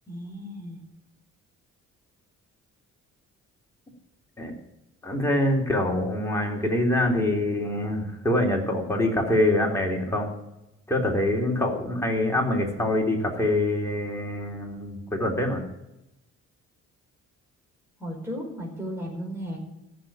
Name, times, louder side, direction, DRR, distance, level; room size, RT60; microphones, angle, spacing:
voice 1, 0.1-0.8 18.0-19.6, equal, 10° right, -2 dB, 5.0 m, -35 dB
voice 2, 5.0-10.3 10.9-15.6, left 1 dB, 10° left, -1 dB, 3.6 m, -25 dB
15.0 x 6.9 x 8.9 m, 0.90 s
cardioid pair, 90°, 30 cm